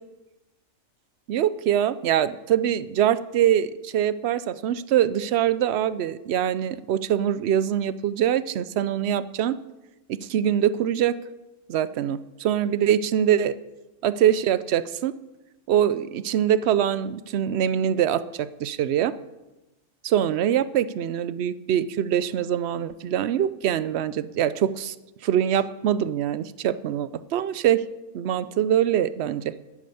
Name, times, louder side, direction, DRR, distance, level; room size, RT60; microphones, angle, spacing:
voice 1, 1.3-9.6 10.1-11.2 11.7-13.5 14.0-15.1 15.7-19.2 20.0-24.9 25.2-27.8 28.1-29.5, right 10 dB, 65° right, 16 dB, 0.7 m, -23 dB
11.5 x 8.6 x 6.9 m, 1.0 s
omnidirectional pair, 1.5 m